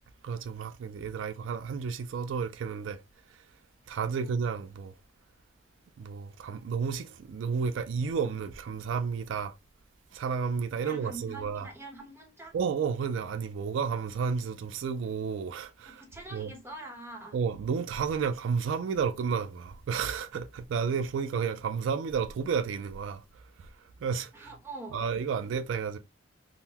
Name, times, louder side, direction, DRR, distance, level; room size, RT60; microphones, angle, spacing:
voice 1, 0.2-3.0 3.9-4.9 6.0-9.5 10.1-11.7 12.5-16.0 16.3-16.5 17.3-23.2 24.0-24.5 24.9-26.0, right 6 dB, 85° right, 0.3 m, -31 dB
voice 2, 10.8-12.5 15.9-17.4 24.3-25.0, right 2 dB, 10° right, 0.9 m, -44 dB
3.6 x 2.1 x 2.8 m
head